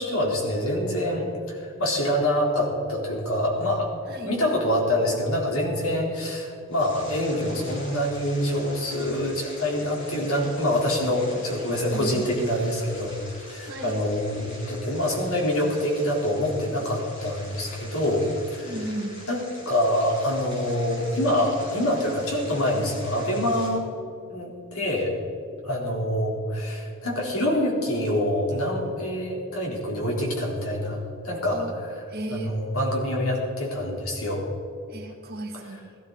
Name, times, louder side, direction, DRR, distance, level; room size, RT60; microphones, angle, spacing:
voice 1, 0.0-3.9 4.2-18.8 19.3-23.9 24.3-25.1 25.6-31.6 32.3-34.5 35.5-35.8, left 1 dB, 70° left, -2 dB, 3.8 m, -26 dB
sound 1, 6.7-23.7, left 1 dB, 55° left, 4.4 m, -45 dB
voice 2, 11.8-12.3 13.7-14.0 18.6-19.1 31.5-31.7 32.1-32.5 34.9-35.8, right 1 dB, 45° right, 0 dB, 2.2 m, -34 dB
18.0 x 14.5 x 4.1 m, 2.5 s
head